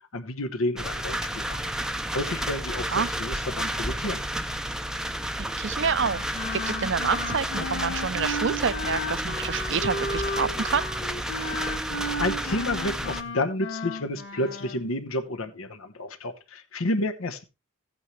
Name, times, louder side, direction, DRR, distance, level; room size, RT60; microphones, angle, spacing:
voice 1, 0.1-1.6 1.9-4.2 11.4-11.6 11.9-17.4, left 1 dB, 80° left, 1.1 m, -30 dB
sound 1, 0.8-13.2, right 1 dB, 5° right, 0.6 m, -31 dB
voice 2, 5.4-10.9, right 5 dB, 60° right, 0.6 m, -28 dB
Wind instrument woodwind instrument, 5.8-14.8, left 1 dB, 55° left, 2.1 m, -34 dB
14.0 x 8.8 x 3.3 m
head